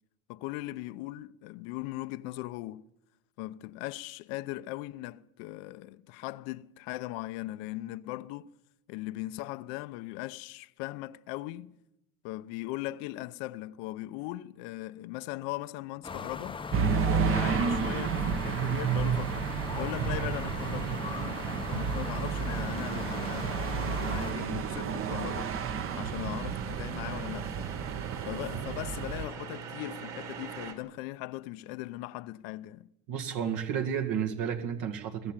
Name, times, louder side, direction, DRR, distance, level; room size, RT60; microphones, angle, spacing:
voice 1, 0.3-2.8 3.4-8.5 8.9-11.8 12.2-16.6 17.1-19.5 19.8-21.1 21.7-25.6 25.9-27.5 28.3-32.9, left 17 dB, 75° left, 0.9 m, -39 dB
sound 1, 16.0-24.3, left 5 dB, 15° left, 0.7 m, -39 dB
sound 2, 16.7-29.3, right 6 dB, 35° right, 1.0 m, -31 dB
sound 3, 19.7-30.7, right 7 dB, 85° right, 3.7 m, -43 dB
voice 2, 33.1-35.3, right 8 dB, 65° right, 1.9 m, -31 dB
23.0 x 16.5 x 7.5 m
cardioid pair, 135°, 36 cm